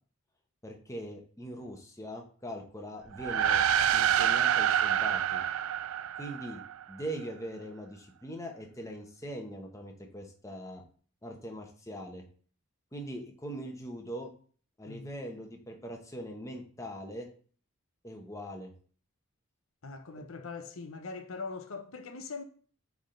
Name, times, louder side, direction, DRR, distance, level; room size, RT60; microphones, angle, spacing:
voice 1, 0.6-3.6 3.9-5.4 6.2-6.6 6.9-10.8 11.2-12.2 12.9-14.3 14.8-17.3 18.0-18.7, equal, 15° left, 1.0 m, -41 dB
sound 1, 3.1-6.8, right 9 dB, 75° right, 0.3 m, -27 dB
voice 2, 14.9-15.2 19.8-22.4, left 4 dB, 75° left, 0.8 m, -41 dB
8.8 x 3.6 x 3.8 m
head